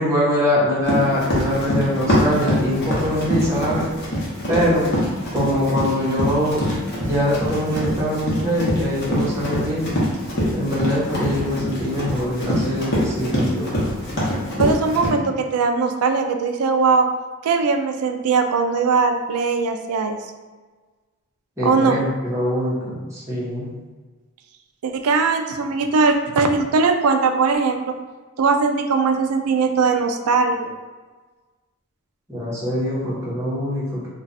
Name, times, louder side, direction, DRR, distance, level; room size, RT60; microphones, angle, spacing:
voice 1, 0.0-3.9 4.5-4.9 5.3-6.6 7.0-9.9 10.5-13.7 21.6-23.7 32.3-34.1, equal, 15° right, -8 dB, 0.9 m, -23 dB
Run, 0.8-15.1, equal, 50° left, 0.8 m, -24 dB
voice 2, 14.6-17.1 17.4-20.2 21.6-22.0 24.8-28.0 28.4-30.7, right 4 dB, 80° right, 6 dB, 0.4 m, -20 dB
2.4 x 2.3 x 4.0 m, 1.3 s
head